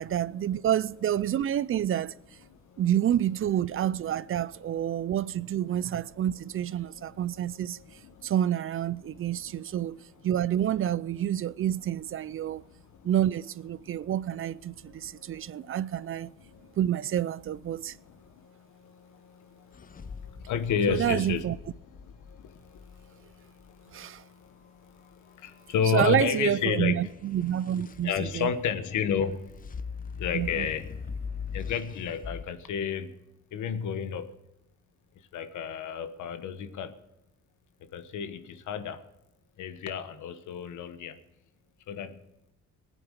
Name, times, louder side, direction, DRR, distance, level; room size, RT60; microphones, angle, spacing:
voice 1, 0.0-2.1 2.8-7.8 8.2-10.0 10.2-12.6 13.0-16.3 16.8-18.0 20.9-21.6 23.9-24.2 25.9-28.5 30.3-30.7, right 11 dB, 45° right, 0.4 m, -28 dB
voice 2, 2.5-2.8 4.8-5.0 5.9-6.1 6.9-8.3 9.0-9.9 12.4-13.1 13.8-14.1 14.8-15.8 16.2-16.8 17.7-21.4 21.8-27.1 28.0-29.5 29.8-30.9 31.5-33.2 33.5-34.4 35.3-37.0 37.8-39.0 39.6-41.2 41.9-42.2, left 7 dB, 75° left, 1.3 m, -33 dB
sound 1, 19.7-23.8 27.1-32.4, left 5 dB, 30° left, 0.7 m, -41 dB
18.5 x 9.1 x 6.6 m
cardioid pair, 90°, 30 cm